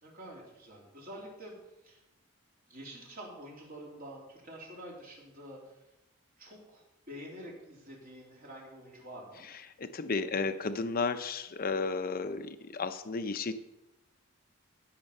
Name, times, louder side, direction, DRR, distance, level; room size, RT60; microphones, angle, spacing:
voice 1, 0.0-1.6 1.8-2.0 2.7-5.7 6.4-9.5 12.6-12.7, equal, 45° right, -2 dB, 3.5 m, -47 dB
voice 2, 9.5-13.5, left 4 dB, 45° left, 9 dB, 0.7 m, -33 dB
15.5 x 6.8 x 5.5 m, 0.92 s
head